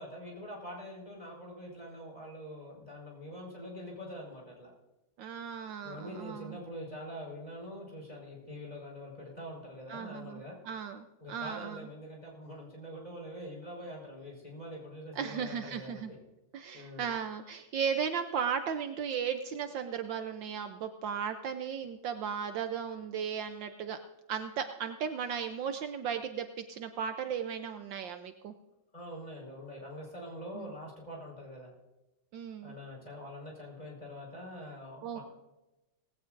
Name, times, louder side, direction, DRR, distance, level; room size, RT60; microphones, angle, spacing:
voice 1, 0.0-4.7 5.8-10.6 11.2-16.2 16.7-17.1 28.9-31.7 32.6-35.2, equal, 20° left, -2 dB, 4.9 m, -44 dB
voice 2, 5.2-6.6 9.9-11.9 15.2-16.1 16.5-24.0 24.3-28.5 30.5-30.7 32.3-32.7 35.0-35.2, right 7 dB, 70° right, 8 dB, 1.4 m, -36 dB
18.5 x 16.5 x 2.6 m, 0.99 s
omnidirectional pair, 2.2 m